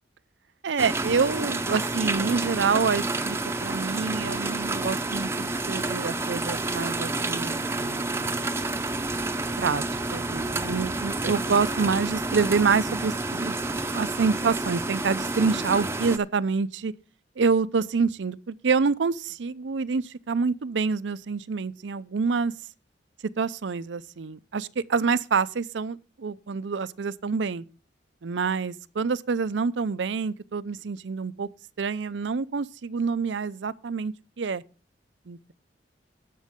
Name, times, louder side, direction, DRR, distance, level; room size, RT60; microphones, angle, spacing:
voice 1, 0.6-8.3 9.0-9.1 9.6-9.8 10.1-13.6 13.9-16.9 17.4-22.5 23.4-27.6 28.2-31.5 31.8-34.6 35.3-35.5, right 5 dB, 80° right, 0.5 m, -27 dB
sound 1, 0.8-16.2, right 2 dB, 15° right, 0.7 m, -29 dB
18.5 x 6.4 x 3.6 m
head